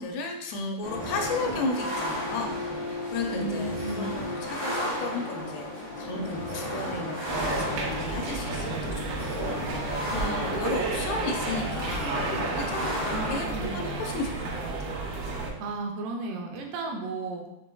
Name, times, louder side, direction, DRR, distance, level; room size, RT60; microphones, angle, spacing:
voice 1, 0.0-2.5 2.9-12.2 12.5-14.9, left 3 dB, 85° left, 3 dB, 2.6 m, -34 dB
sound 1, 0.8-13.4, left 1 dB, 50° right, 1.0 m, -34 dB
voice 2, 3.3-4.1 13.1-13.8 15.6-17.5, right 3 dB, 90° right, 1 dB, 2.6 m, -34 dB
sound 2, 7.3-15.5, right 3 dB, 75° right, 2.6 m, -32 dB
7.3 x 3.1 x 2.2 m, 0.90 s
omnidirectional pair, 4.5 m